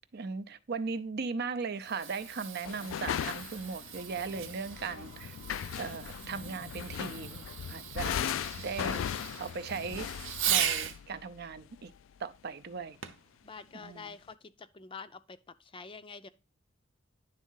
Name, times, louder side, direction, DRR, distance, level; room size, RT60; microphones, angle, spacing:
voice 1, 0.1-5.4 5.8-8.2 8.6-9.0 9.4-10.1 10.5-11.9 12.2-13.0 13.7-14.1, right 5 dB, 55° right, 0.5 m, -38 dB
Fireworks, 1.7-11.0 13.0-13.3 14.0-14.1, right 9 dB, 85° right, 0.8 m, -38 dB
sound 1, 2.1-2.2 2.6-11.8, left 9 dB, 85° left, 0.3 m, -38 dB
voice 2, 13.4-16.3, left 5 dB, 25° left, 0.5 m, -47 dB
10.5 x 3.6 x 5.5 m
head